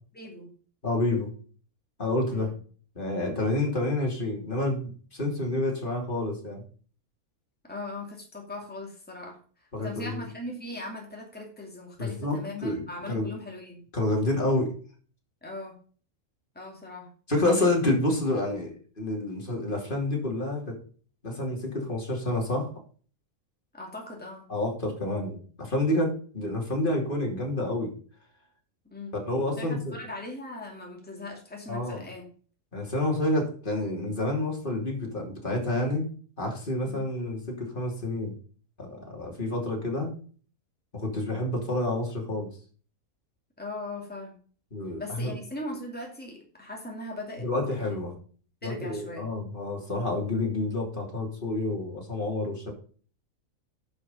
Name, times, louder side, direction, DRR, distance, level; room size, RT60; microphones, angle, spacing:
voice 1, 0.1-0.5 2.3-2.5 7.6-9.4 9.8-13.8 15.4-15.7 16.5-17.1 23.7-24.5 28.8-29.1 29.6-32.3 36.8-37.1 43.6-44.3 45.0-47.9 48.6-49.3, left 2 dB, 5° left, 0 dB, 2.5 m, -39 dB
voice 2, 0.8-1.3 2.0-2.5 3.0-6.6 9.7-10.2 12.0-13.3 13.9-14.7 17.3-20.8 21.2-22.7 24.5-27.9 29.1-30.0 31.7-32.0 32.7-36.0 36.4-38.4 38.8-40.1 40.9-42.5 44.7-45.3 47.4-48.1 48.6-52.7, left 2 dB, 35° left, 0 dB, 3.1 m, -29 dB
10.5 x 6.1 x 5.4 m, 0.42 s
omnidirectional pair, 1.5 m